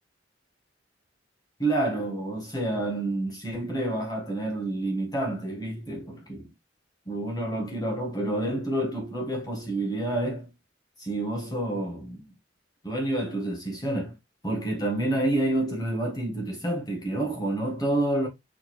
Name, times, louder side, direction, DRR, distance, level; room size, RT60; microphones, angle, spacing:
voice 1, 1.6-6.5 7.0-10.5 11.0-12.2 12.8-14.2 14.4-18.3, right 1 dB, 20° left, 1.5 m, -28 dB
4.2 x 4.0 x 3.1 m
head